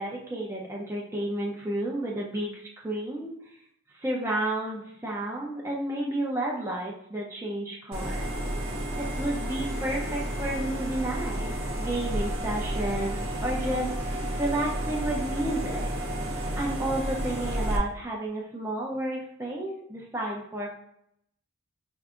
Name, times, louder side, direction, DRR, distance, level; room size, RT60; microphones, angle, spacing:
voice 1, 0.0-3.3 4.0-8.3 9.0-15.9 16.6-20.7, right 1 dB, 10° right, -3 dB, 0.5 m, -31 dB
sound 1, 7.9-17.8, right 1 dB, 65° right, 0.8 m, -31 dB
4.5 x 2.6 x 2.4 m, 0.74 s
head